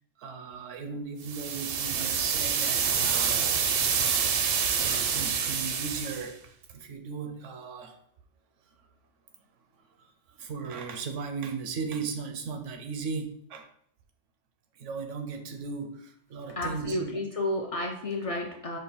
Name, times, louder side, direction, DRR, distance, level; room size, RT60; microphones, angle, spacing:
voice 1, 0.2-3.4 4.8-6.4 6.7-8.0 10.4-13.7 14.8-17.1, right 5 dB, 80° right, 6 dB, 1.0 m, -36 dB
sound 1, 1.2-6.3, right 7 dB, 60° right, 0.6 m, -27 dB
voice 2, 16.5-18.8, left 1 dB, 65° left, 1 dB, 0.3 m, -31 dB
5.3 x 2.2 x 4.1 m, 0.67 s
omnidirectional pair, 1.3 m